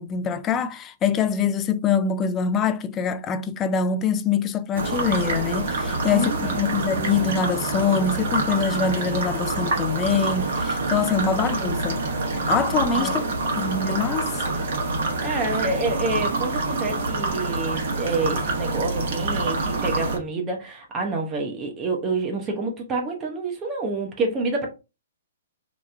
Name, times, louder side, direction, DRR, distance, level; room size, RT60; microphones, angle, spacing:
voice 1, 0.0-12.0 12.5-13.2 13.5-14.4, left 6 dB, 25° left, 0.3 m, -24 dB
sound 1, 4.7-20.2, right 3 dB, 60° right, 1.1 m, -26 dB
voice 2, 6.0-6.7 11.2-11.4 12.9-13.2 15.2-24.7, right 3 dB, 25° right, 0.7 m, -28 dB
Bowed string instrument, 9.9-14.1, right 2 dB, 85° right, 0.6 m, -36 dB
2.9 x 2.2 x 3.2 m
hypercardioid pair, 120°, 0 cm